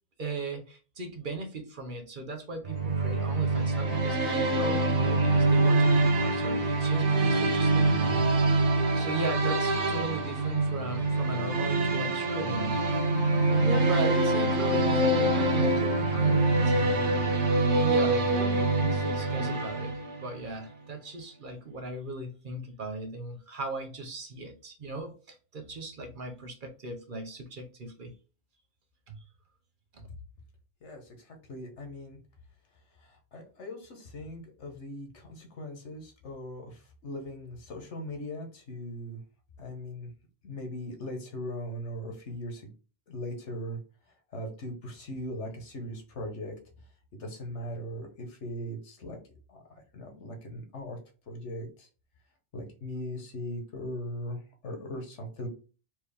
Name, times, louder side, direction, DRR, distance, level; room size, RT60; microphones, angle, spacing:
voice 1, 0.2-12.8 13.5-17.1 17.7-28.1 29.1-29.2 29.9-30.1, right 3 dB, 50° right, 0.9 m, -38 dB
sound 1, 2.6-20.4, right 2 dB, 80° right, 1.2 m, -25 dB
voice 2, 30.8-32.2 33.0-39.2 39.6-40.1 40.4-42.7 43.1-43.8 44.1-46.6 47.2-49.2 49.5-51.0 51.3-51.9 52.5-55.5, equal, 90° left, 1.5 m, -39 dB
4.5 x 3.0 x 3.4 m
omnidirectional pair, 1.2 m